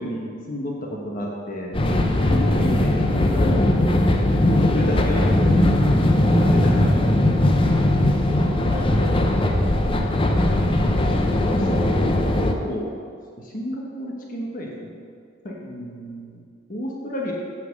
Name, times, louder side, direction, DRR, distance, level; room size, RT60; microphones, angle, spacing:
voice 1, 0.0-1.8 2.3-5.6 6.2-7.3 7.6-7.9 10.1-10.7 11.3-12.9 13.4-14.9 15.4-16.4 16.7-17.3, equal, 45° left, -2 dB, 1.2 m, -32 dB
sound 1, 1.7-12.5, left 1 dB, 25° left, 0.6 m, -19 dB
voice 2, 2.2-2.6 8.1-9.9, left 1 dB, 25° right, -7 dB, 2.6 m, -34 dB
8.2 x 5.8 x 6.5 m, 2.2 s
head